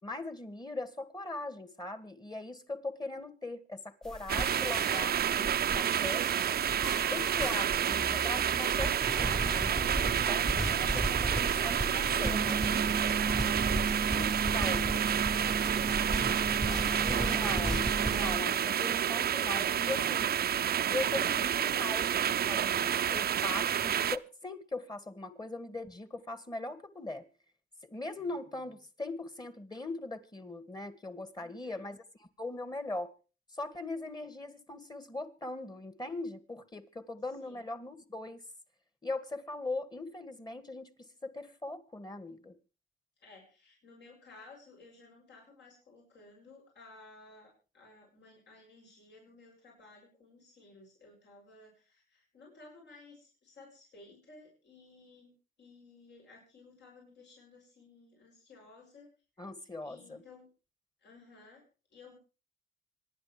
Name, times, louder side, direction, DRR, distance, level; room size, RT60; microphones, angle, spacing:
voice 1, 0.0-6.6 7.1-9.9 10.2-12.4 14.1-15.0 17.0-20.3 20.9-27.2 27.9-33.1 33.5-38.4 39.0-42.6 59.4-60.2, left 2 dB, 20° left, 2.1 m, -40 dB
sound 1, 4.0-18.4, right 1 dB, ahead, 1.1 m, -36 dB
sound 2, 4.3-24.2, right 9 dB, 50° right, 0.7 m, -29 dB
voice 2, 11.8-17.4 31.4-31.9 37.4-37.7 43.2-59.1 59.6-60.5 61.0-61.6 61.9-62.1, left 3 dB, 60° left, 7.8 m, -55 dB
sound 3, 12.2-18.4, right 4 dB, 20° right, 1.0 m, -36 dB
25.5 x 11.0 x 3.3 m
cardioid pair, 90°, 20 cm